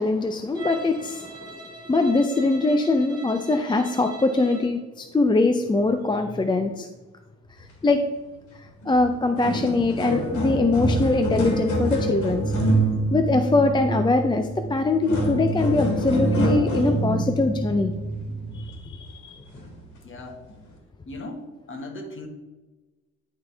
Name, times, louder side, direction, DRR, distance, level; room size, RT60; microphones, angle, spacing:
voice 1, 0.0-1.6 1.9-6.9 7.8-8.0 8.9-12.4 13.1-17.9 18.5-19.3, left 3 dB, 15° left, 6 dB, 0.5 m, -22 dB
Bowed string instrument, 0.5-4.8, right 3 dB, 15° right, 1.7 m, -42 dB
sound 1, 8.8-9.0 9.2-18.9 19.6-19.7 20.5-20.6, right 1 dB, 75° left, 2.0 m, -26 dB
voice 2, 20.0-20.4 21.0-22.3, left 2 dB, 40° left, 3 dB, 1.6 m, -37 dB
11.0 x 3.8 x 3.4 m, 1.2 s
cardioid pair, 90°, 30 cm